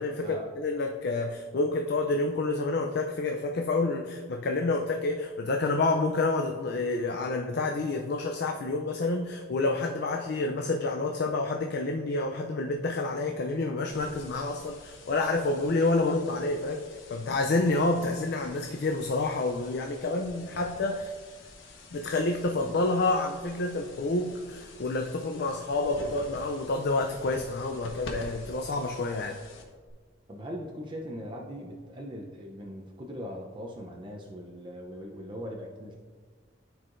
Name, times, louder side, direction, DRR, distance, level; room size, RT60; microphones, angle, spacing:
voice 1, 0.0-21.1 21.9-29.4, left 2 dB, 55° left, 3 dB, 0.5 m, -28 dB
sound 1, 13.9-29.9, left 2 dB, 75° left, 1.0 m, -48 dB
voice 2, 30.3-35.9, equal, 25° right, -1 dB, 0.6 m, -40 dB
13.5 x 4.7 x 2.5 m, 1.5 s
head